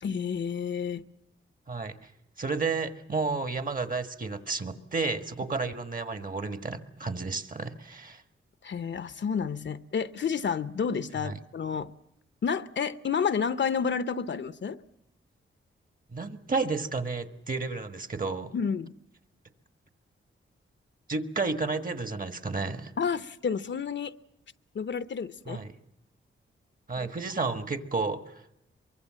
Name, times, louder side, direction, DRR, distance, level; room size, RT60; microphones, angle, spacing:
voice 1, 0.0-1.1 8.6-11.9 12.4-14.8 18.5-18.9 23.0-24.1 24.7-25.6 27.0-27.1, left 6 dB, 60° left, 13 dB, 0.8 m, -30 dB
voice 2, 2.4-8.2 11.2-11.4 16.1-18.5 21.1-22.9 25.5-25.7 26.9-28.6, right 4 dB, 40° right, 9 dB, 1.5 m, -32 dB
23.5 x 23.0 x 7.5 m, 0.82 s
wide cardioid pair, 90°, 21 cm